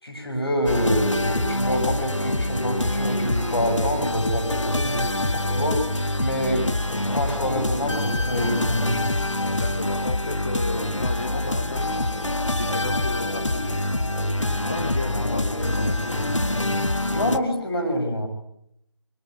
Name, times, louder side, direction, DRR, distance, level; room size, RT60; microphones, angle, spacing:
voice 1, 0.0-5.9 6.2-6.7 7.1-9.1 17.1-18.3, equal, 50° left, 5 dB, 6.4 m, -26 dB
sound 1, 0.7-17.4, left 1 dB, 80° left, 1.8 m, -25 dB
voice 2, 9.4-12.1 12.5-13.8 14.4-16.3, left 2 dB, 25° left, 6 dB, 1.2 m, -34 dB
sound 2, 11.5-16.5, left 1 dB, 5° right, 4.8 m, -42 dB
22.5 x 19.5 x 9.5 m, 0.78 s
figure-of-eight pair, 170°, 16 cm